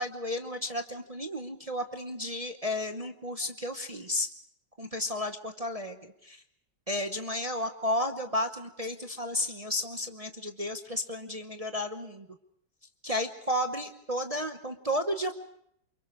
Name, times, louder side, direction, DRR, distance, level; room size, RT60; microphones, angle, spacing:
voice 1, 0.0-4.3 4.8-6.4 6.9-12.3 13.0-15.3, left 1 dB, 30° right, 6 dB, 0.8 m, -33 dB
28.0 x 24.0 x 4.9 m, 0.72 s
omnidirectional pair, 1.9 m